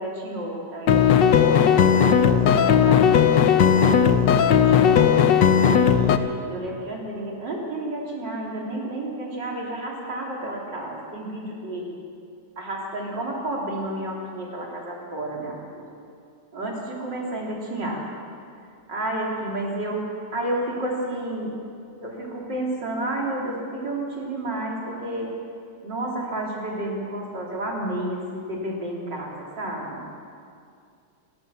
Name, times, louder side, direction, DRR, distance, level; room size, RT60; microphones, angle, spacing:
voice 1, 0.0-1.8 2.3-5.2 5.8-12.0 12.6-15.9 16.5-18.1 18.9-21.6 22.0-25.3 25.8-30.0, right 1 dB, 85° right, -2 dB, 4.1 m, -31 dB
sound 1, 0.9-6.2, left 8 dB, 85° left, 1.6 m, -17 dB
29.5 x 12.5 x 7.1 m, 2.4 s
omnidirectional pair, 1.9 m